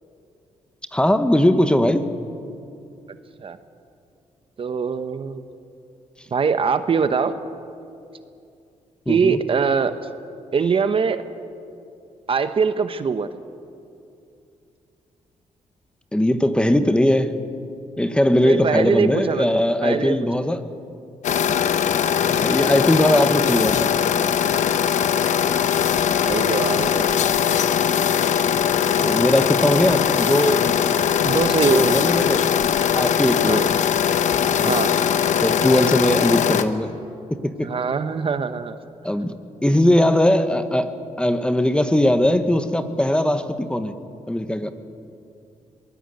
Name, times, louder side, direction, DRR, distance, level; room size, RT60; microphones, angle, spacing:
voice 1, 0.9-2.0 9.1-9.4 16.1-17.3 18.0-20.6 21.5-21.6 22.3-23.9 29.0-30.7 31.7-32.4 32.9-33.7 34.6-34.8 35.4-37.0 37.3-37.7 39.0-39.3 39.6-43.9 44.3-44.7, left 1 dB, 10° left, 10 dB, 1.3 m, -20 dB
voice 2, 4.6-5.4 6.3-7.4 9.1-9.9 10.5-11.2 12.3-13.3 18.4-20.3 26.3-27.2 31.2-32.0 33.4-33.7 34.6-35.0 37.6-38.8, right 5 dB, 45° right, 11 dB, 1.0 m, -22 dB
sound 1, 21.2-36.6, left 8 dB, 70° left, 1.1 m, -20 dB
23.0 x 20.0 x 8.0 m, 2.6 s
cardioid pair, 90°, 13 cm